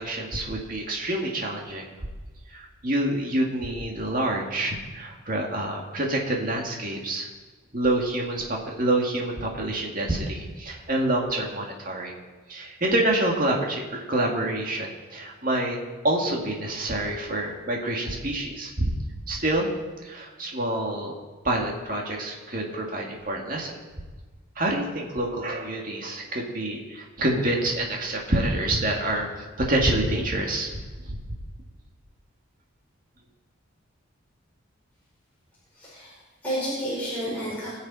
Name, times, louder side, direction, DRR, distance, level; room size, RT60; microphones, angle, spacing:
voice 1, 0.0-1.9 2.5-7.3 7.7-12.1 12.5-15.8 16.0-18.9 19.3-19.7 20.0-21.1 21.4-23.8 24.6-30.7 31.0-31.2, right 1 dB, 40° right, -1 dB, 2.3 m, -27 dB
voice 2, 35.7-37.7, equal, 10° left, -10 dB, 5.0 m, -31 dB
21.0 x 7.2 x 5.0 m, 1.4 s
head